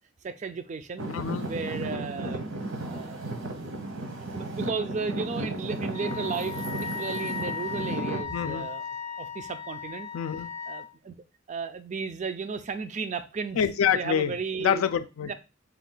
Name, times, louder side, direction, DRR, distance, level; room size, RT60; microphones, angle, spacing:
voice 1, 0.2-1.1 1.5-2.5 2.8-3.2 3.5-3.7 4.0-8.9 9.2-10.1 10.7-11.2 11.5-14.9 15.2-15.3, right 5 dB, 35° right, 0.4 m, -34 dB
Traffic noise roadway noise / Engine, 1.0-8.2, right 2 dB, 75° right, 0.9 m, -34 dB
voice 2, 1.1-1.5 8.3-8.7 10.1-10.5 13.6-14.3 14.6-15.3, left 8 dB, 85° left, 0.4 m, -26 dB
Wind instrument woodwind instrument, 5.9-10.9, left 6 dB, 15° left, 0.5 m, -36 dB
4.4 x 2.3 x 3.8 m
head